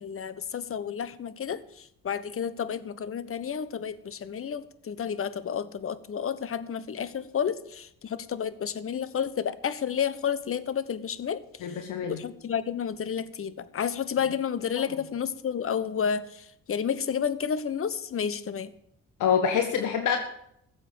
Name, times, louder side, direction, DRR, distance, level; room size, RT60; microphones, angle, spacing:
voice 1, 0.0-11.4 11.7-11.8 12.1-18.7, left 7 dB, 45° left, 15 dB, 1.2 m, -31 dB
voice 2, 11.6-12.2 19.2-20.2, left 7 dB, 80° left, 5 dB, 1.6 m, -25 dB
15.0 x 7.9 x 7.7 m, 0.73 s
cardioid pair, 90°, 30 cm